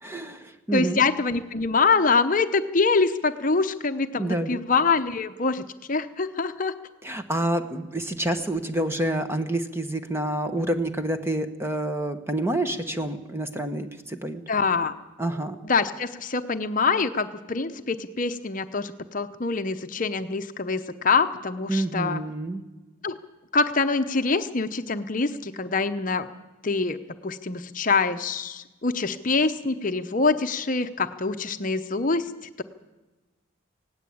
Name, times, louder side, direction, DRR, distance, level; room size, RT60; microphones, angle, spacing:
voice 1, 0.0-1.0 4.1-4.6 7.0-14.4 15.2-15.6 21.7-22.6, right 1 dB, 10° right, 8 dB, 1.0 m, -28 dB
voice 2, 0.7-5.6 5.9-6.7 14.5-14.9 15.6-22.2 23.0-23.2 23.5-26.3 26.6-27.0 27.2-32.3, left 4 dB, 40° left, 8 dB, 0.8 m, -25 dB
19.0 x 17.0 x 8.5 m, 1.1 s
head